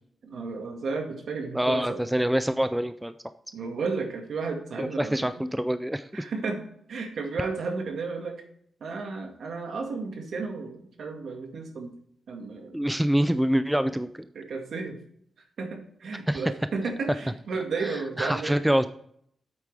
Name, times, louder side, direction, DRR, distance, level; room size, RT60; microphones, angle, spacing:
voice 1, 0.2-2.0 3.5-5.3 6.1-8.4 8.8-11.9 12.3-12.8 14.4-15.0 15.6-18.6, right 4 dB, 65° right, 3 dB, 1.8 m, -33 dB
voice 2, 1.5-3.1 4.8-6.1 12.7-14.1 16.3-16.4 18.2-18.9, equal, 5° right, 11 dB, 0.3 m, -25 dB
8.7 x 8.2 x 3.4 m, 0.66 s
wide cardioid pair, 165°, 0 cm